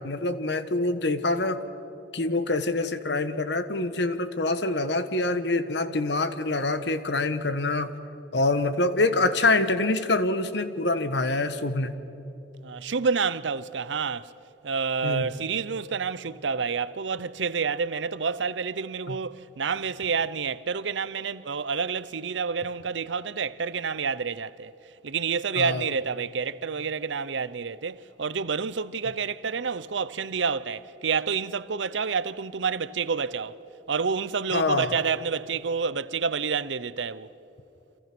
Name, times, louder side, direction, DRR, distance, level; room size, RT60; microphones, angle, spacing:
voice 1, 0.0-1.6 2.1-7.9 8.3-11.9 15.0-15.3 19.1-19.2 25.6-25.8 34.5-34.9, left 2 dB, 65° left, 1.3 m, -25 dB
voice 2, 12.6-14.3 14.6-24.7 25.0-33.6 33.9-37.3, right 5 dB, 80° right, 0.7 m, -29 dB
30.0 x 27.0 x 6.1 m
head